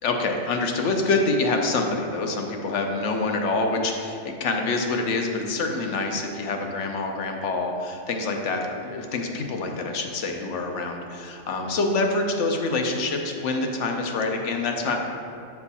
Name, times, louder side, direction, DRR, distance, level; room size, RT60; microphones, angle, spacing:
voice 1, 0.0-15.0, left 3 dB, 75° left, 3 dB, 1.1 m, -26 dB
6.8 x 4.5 x 4.1 m, 2.5 s
omnidirectional pair, 1.2 m